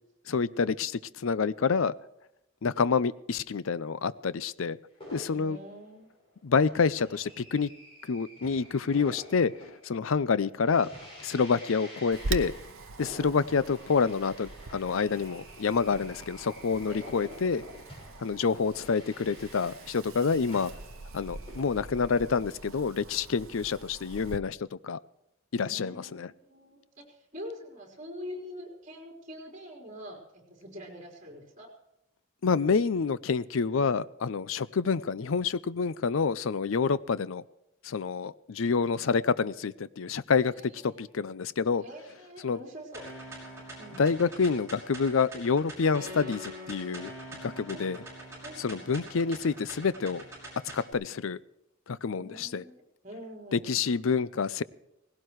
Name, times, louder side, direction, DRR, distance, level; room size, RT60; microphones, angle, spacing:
voice 1, 0.3-1.9 2.6-4.8 5.1-5.6 6.4-7.7 8.0-9.5 9.8-10.9 11.2-12.5 13.0-17.6 18.2-20.7 21.1-25.0 25.5-26.3 32.4-37.4 37.8-40.5 40.8-41.8 42.4-42.6 44.0-47.1 47.4-48.0 48.6-50.2 50.7-51.4 51.9-52.6 53.5-54.6, left 5 dB, 70° left, 18 dB, 0.5 m, -28 dB
sound 1, 5.0-22.5, equal, 30° left, 6.3 m, -49 dB
voice 2, 5.3-6.1 16.9-17.0 25.6-31.7 40.4-41.1 41.8-43.0 43.8-44.0 47.7-48.0 48.4-49.1 52.1-53.7, equal, 35° right, 0 dB, 4.2 m, -45 dB
Wind, 12.1-24.4, right 3 dB, 80° right, 0.8 m, -42 dB
sound 2, 42.9-50.9, right 1 dB, 15° right, 5.7 m, -44 dB
18.5 x 17.0 x 3.2 m, 0.88 s
head